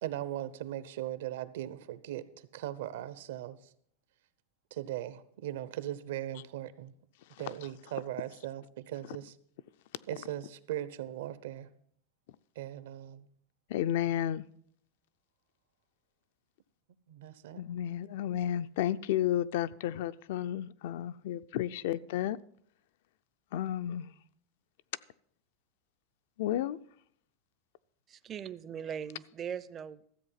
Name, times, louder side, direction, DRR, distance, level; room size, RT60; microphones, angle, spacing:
voice 1, 0.0-3.6 4.7-6.9 7.4-9.3 10.1-11.7 12.6-13.3 17.1-17.6, right 13 dB, 75° right, 15 dB, 0.8 m, -39 dB
voice 2, 13.7-14.4 17.6-22.4 23.5-24.1 26.4-26.8, left 11 dB, 65° left, 15 dB, 0.4 m, -32 dB
voice 3, 28.1-30.1, right 8 dB, 20° right, 16 dB, 0.4 m, -40 dB
13.5 x 7.7 x 5.7 m, 0.64 s
supercardioid pair, 165°, 0 cm